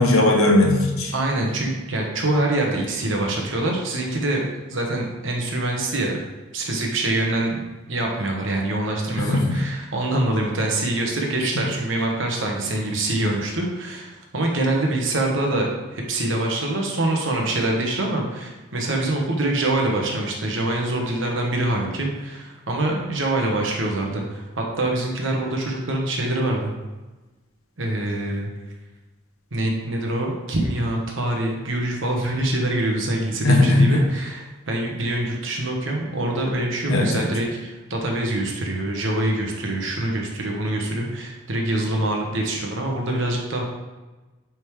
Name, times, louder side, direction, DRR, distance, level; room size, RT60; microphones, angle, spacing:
voice 1, 0.0-1.1 9.2-9.6 33.4-34.0 36.9-37.3, left 2 dB, 80° left, 1 dB, 0.9 m, -18 dB
voice 2, 1.1-4.4 4.7-6.2 6.5-7.6 7.9-26.7 27.8-28.5 29.5-43.6, right 1 dB, 65° right, 0 dB, 1.1 m, -25 dB
8.8 x 3.6 x 3.2 m, 1.2 s
head